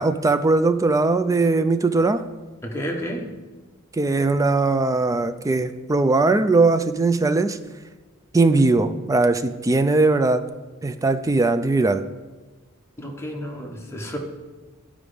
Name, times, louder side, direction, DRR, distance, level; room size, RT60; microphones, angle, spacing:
voice 1, 0.0-2.2 3.9-7.6 8.3-10.4 10.8-12.1, right 3 dB, 15° right, 10 dB, 0.3 m, -20 dB
voice 2, 2.6-3.3 13.0-14.2, equal, 10° left, 0 dB, 1.1 m, -31 dB
11.0 x 5.0 x 5.0 m, 1.3 s
head